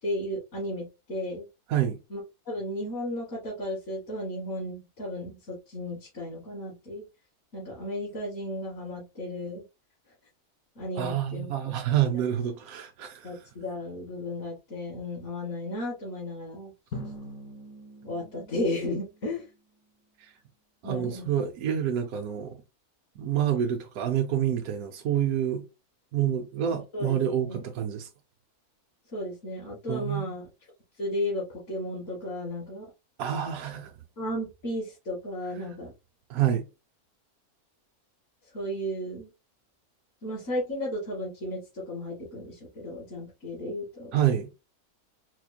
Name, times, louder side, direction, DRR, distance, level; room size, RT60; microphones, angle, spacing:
voice 1, 0.0-1.5 2.1-2.2 2.5-7.0 7.5-9.6 10.8-11.5 13.2-16.7 18.0-19.5 20.8-21.3 26.7-27.2 27.4-27.6 29.1-30.4 31.0-32.9 34.2-35.9 38.5-39.3 40.2-44.2, left 1 dB, 60° left, 2.0 m, -34 dB
voice 2, 11.0-13.3 20.2-20.3 20.8-22.6 23.2-25.6 26.1-28.1 29.9-30.3 33.2-33.9 36.3-36.6 44.1-44.5, right 10 dB, 75° right, 1.1 m, -27 dB
Drum, 16.9-19.6, left 1 dB, 85° left, 2.1 m, -43 dB
4.3 x 3.1 x 2.2 m
omnidirectional pair, 1.6 m